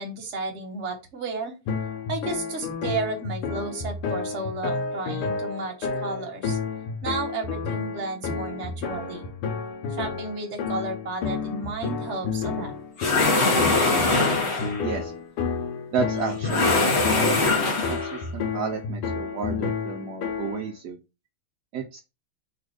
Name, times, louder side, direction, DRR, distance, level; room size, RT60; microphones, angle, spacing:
voice 1, 0.0-1.5 2.1-6.6 7.0-9.2 9.9-12.7, right 3 dB, 40° right, 2 dB, 1.1 m, -33 dB
sound 1, 1.7-20.7, left 5 dB, 85° left, 1.9 m, -31 dB
sound 2, 13.0-14.8 16.4-18.2, left 2 dB, 45° left, 0.9 m, -22 dB
voice 2, 14.8-15.1 15.9-17.6 17.9-21.0 21.7-22.0, right 5 dB, 75° right, 2 dB, 0.9 m, -32 dB
4.2 x 2.4 x 4.7 m, 0.27 s
omnidirectional pair, 2.4 m